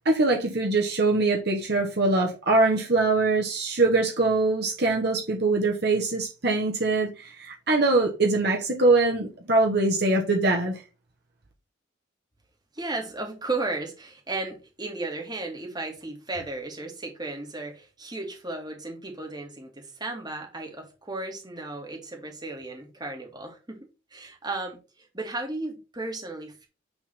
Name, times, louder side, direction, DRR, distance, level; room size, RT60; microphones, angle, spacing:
voice 1, 0.0-10.8, right 2 dB, 50° right, 1.5 m, -23 dB
voice 2, 12.7-26.7, right 2 dB, 20° right, 2.2 m, -35 dB
9.4 x 3.9 x 4.4 m
head